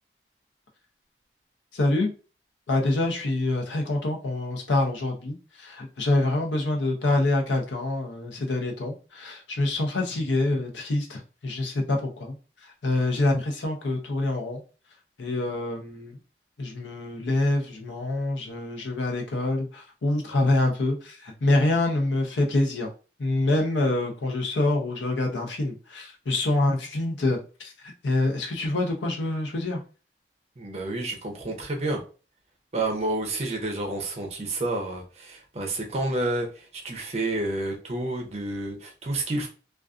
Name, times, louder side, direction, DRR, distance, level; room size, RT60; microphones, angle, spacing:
voice 1, 1.7-2.1 2.7-12.4 12.6-14.6 15.2-16.2 16.6-22.9 23.2-29.8, left 2 dB, 85° left, 2 dB, 0.6 m, -26 dB
voice 2, 30.6-32.0 32.7-39.5, right 2 dB, 35° right, 3 dB, 0.5 m, -29 dB
2.4 x 2.3 x 2.3 m, 0.35 s
head